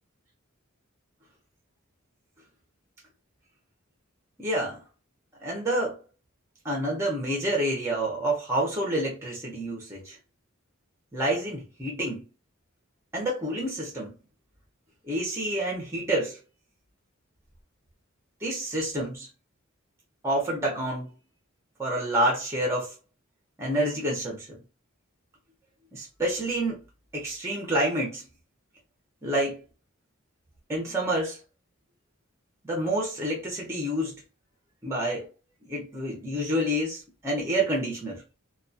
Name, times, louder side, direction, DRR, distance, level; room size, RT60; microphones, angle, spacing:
voice 1, 4.4-4.8 5.4-6.0 6.6-10.2 11.1-12.2 13.1-14.1 15.1-16.4 18.4-19.3 20.2-21.1 21.8-22.9 23.6-24.6 25.9-26.8 27.1-28.2 29.2-29.6 30.7-31.4 32.6-34.2 34.8-35.3 35.7-38.2, right 1 dB, 15° right, 0.7 m, -28 dB
2.3 x 2.3 x 2.6 m
head